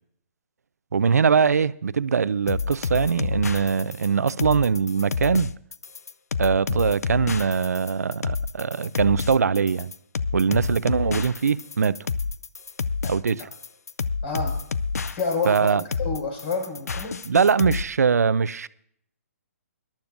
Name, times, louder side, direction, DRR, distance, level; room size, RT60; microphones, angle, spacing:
voice 1, 0.9-5.5 6.4-9.9 10.3-12.0 13.1-13.5 15.5-15.8 17.2-18.7, right 6 dB, 80° right, 0.6 m, -22 dB
sound 1, 2.5-17.8, left 4 dB, 80° left, 0.6 m, -29 dB
voice 2, 14.2-14.6 15.1-17.2, left 4 dB, 40° left, 5.7 m, -29 dB
21.0 x 12.0 x 2.6 m
hypercardioid pair, 145°, 8 cm